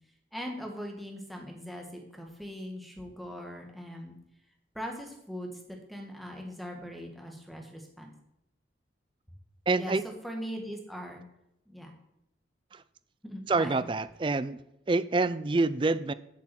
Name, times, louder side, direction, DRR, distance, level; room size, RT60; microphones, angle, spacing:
voice 1, 0.3-4.1 4.7-8.1 9.7-10.0 10.2-11.2 11.7-11.9 13.2-13.8, equal, ahead, 1 dB, 1.5 m, -40 dB
voice 2, 9.7-10.0 12.7-12.8 13.5-14.6 14.9-16.1, right 3 dB, 25° right, 15 dB, 0.4 m, -27 dB
8.4 x 6.1 x 7.6 m, 0.84 s
head